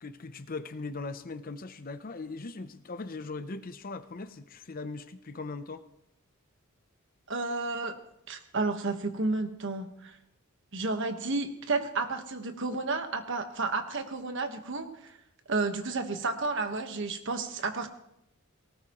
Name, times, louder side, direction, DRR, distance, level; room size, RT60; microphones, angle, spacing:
voice 1, 0.0-5.8, left 3 dB, 40° left, 11 dB, 0.7 m, -39 dB
voice 2, 7.3-7.9 8.3-10.2 10.7-15.1 15.5-17.9, right 3 dB, 60° right, 7 dB, 1.3 m, -31 dB
18.5 x 18.0 x 3.1 m, 0.79 s
head